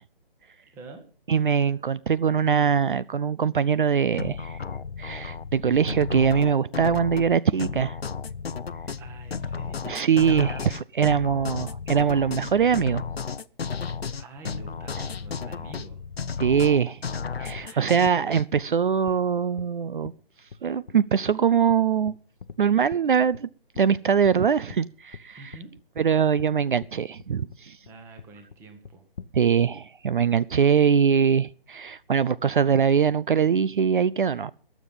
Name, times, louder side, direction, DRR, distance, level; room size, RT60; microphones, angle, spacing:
voice 1, 0.7-1.0 9.0-9.9 14.2-16.0 17.6-18.2 25.4-25.7 27.8-29.0, right 3 dB, 10° right, 1.1 m, -46 dB
voice 2, 1.3-4.6 5.0-8.0 9.9-13.0 16.4-17.0 17.4-20.1 20.6-22.1 22.6-23.5 23.8-25.5 26.0-27.8 29.3-34.5, right 7 dB, 60° right, 0.5 m, -22 dB
sound 1, 4.2-18.4, left 5 dB, 90° left, 0.8 m, -33 dB
sound 2, 17.0-17.1 17.5-17.6 18.1-18.2 18.6-18.7 19.1-19.2 19.6-19.7 20.0-20.1 20.5-20.6 20.9-21.0 21.3-21.4 21.7-21.8 22.1-22.6 22.9-23.0 23.3-23.4 23.7-23.9 24.2-24.4 24.7-24.8 25.1-25.2 25.5-25.6 26.0-26.1 26.4-26.5 26.8-26.9 27.2-27.6 27.9-28.0 28.2-28.6 28.8-29.3, left 6 dB, 55° left, 0.9 m, -42 dB
21.5 x 7.3 x 5.5 m
figure-of-eight pair, 160°, 30 cm